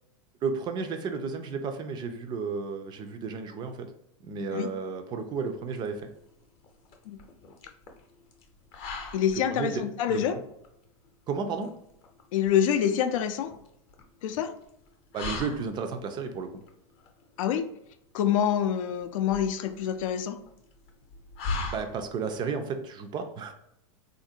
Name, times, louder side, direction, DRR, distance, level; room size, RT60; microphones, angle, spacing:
voice 1, 0.4-3.9 4.2-6.0 9.5-9.8 10.1-10.2 11.3-11.7 15.1-16.5 21.7-23.5, right 5 dB, 25° right, 7 dB, 0.4 m, -32 dB
sound 1, 5.3-22.4, left 3 dB, 35° left, 0.6 m, -41 dB
voice 2, 9.1-10.4 12.3-13.5 14.2-14.5 17.4-17.6 18.1-20.4, left 9 dB, 70° left, 9 dB, 0.4 m, -26 dB
3.7 x 2.5 x 2.7 m, 0.78 s
supercardioid pair, 135°, 17 cm